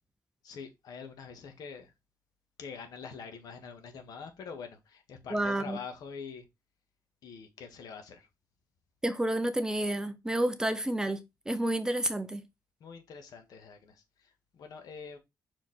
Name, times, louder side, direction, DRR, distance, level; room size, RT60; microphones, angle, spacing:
voice 1, 0.4-1.9 2.6-6.5 7.2-8.3 12.8-15.2, left 6 dB, 75° left, 1.9 m, -45 dB
voice 2, 5.3-5.8 9.0-12.4, right 1 dB, 10° right, 0.7 m, -30 dB
5.8 x 4.9 x 4.3 m
cardioid pair, 135°, 7 cm